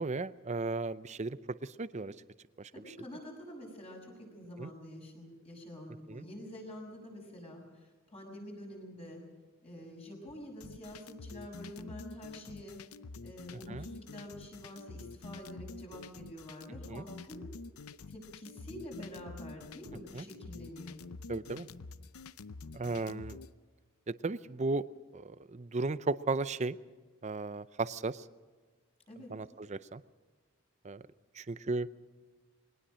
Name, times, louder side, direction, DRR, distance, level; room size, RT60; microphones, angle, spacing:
voice 1, 0.0-2.1 2.6-2.9 4.6-4.7 6.1-6.3 13.7-13.9 16.9-17.0 20.1-20.2 21.3-21.7 22.7-23.4 24.1-24.9 25.1-26.8 27.2-28.2 29.3-30.0 30.8-31.0 31.3-31.9, right 3 dB, 30° right, 15 dB, 0.5 m, -35 dB
voice 2, 2.7-9.2 9.6-12.8 13.2-17.5 18.1-21.0 29.1-29.3, equal, 30° left, 0 dB, 6.1 m, -47 dB
sound 1, 10.6-23.5, left 3 dB, 85° left, 0.7 m, -47 dB
22.0 x 18.5 x 6.3 m, 1.4 s
head